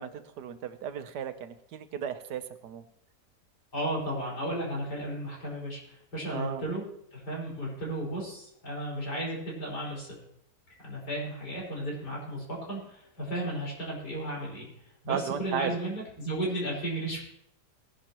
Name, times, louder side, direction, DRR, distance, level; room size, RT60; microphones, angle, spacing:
voice 1, 0.0-2.8 6.3-6.6 15.1-15.7, right 8 dB, 80° right, 10 dB, 1.4 m, -35 dB
voice 2, 3.7-6.8 7.1-10.2 10.8-14.7 15.0-17.2, right 1 dB, 75° left, -4 dB, 5.8 m, -34 dB
20.0 x 11.0 x 3.0 m, 0.74 s
omnidirectional pair, 1.8 m